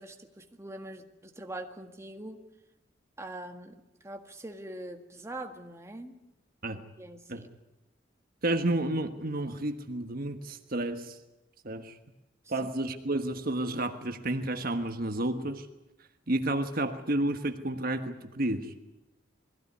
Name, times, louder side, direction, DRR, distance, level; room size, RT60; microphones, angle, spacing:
voice 1, 0.0-2.4 3.2-6.2 6.7-7.5 12.6-12.7, right 1 dB, 15° right, 4 dB, 1.7 m, -43 dB
voice 2, 8.4-11.2 11.6-12.0 12.5-15.7 16.3-18.9, right 1 dB, 50° right, 6 dB, 1.4 m, -31 dB
21.5 x 16.0 x 9.5 m, 0.96 s
head